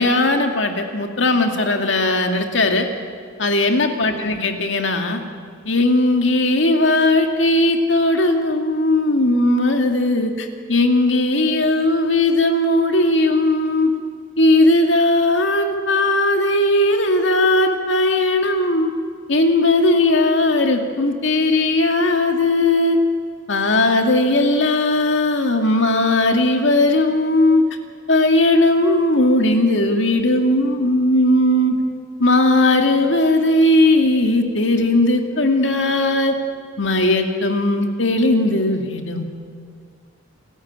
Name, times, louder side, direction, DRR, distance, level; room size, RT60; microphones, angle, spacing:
voice 1, 0.0-2.9 3.4-5.2 5.6-13.9 14.4-18.9 19.3-23.0 23.5-27.6 28.1-31.8 32.2-36.4 36.8-39.2, left 2 dB, 65° left, 5 dB, 2.4 m, -17 dB
28.5 x 13.5 x 9.0 m, 2.2 s
head